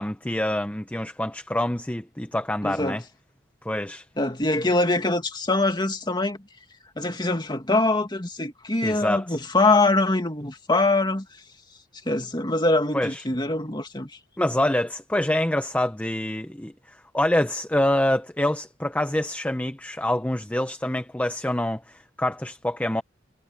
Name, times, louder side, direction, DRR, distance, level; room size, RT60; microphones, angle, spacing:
voice 1, 0.0-3.0 3.6-4.0 8.8-9.4 12.9-13.2 14.4-23.0, left 1 dB, 10° left, 0.7 m, -26 dB
voice 2, 2.6-3.0 4.2-6.4 7.0-11.3 12.1-14.1, left 2 dB, 25° left, 2.3 m, -23 dB
head